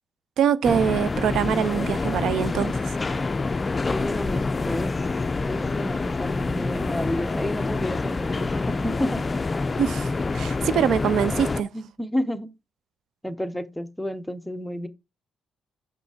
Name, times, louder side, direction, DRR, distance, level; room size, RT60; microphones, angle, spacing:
voice 1, 0.4-2.7 9.8-11.7, right 8 dB, 75° right, 0.5 m, -24 dB
sound 1, 0.6-11.6, left 3 dB, 25° left, 0.4 m, -27 dB
voice 2, 3.9-4.9 5.4-9.2 11.7-12.5 13.2-14.9, left 1 dB, 5° left, 0.8 m, -31 dB
6.7 x 5.0 x 4.9 m
cardioid pair, 90°, 0 cm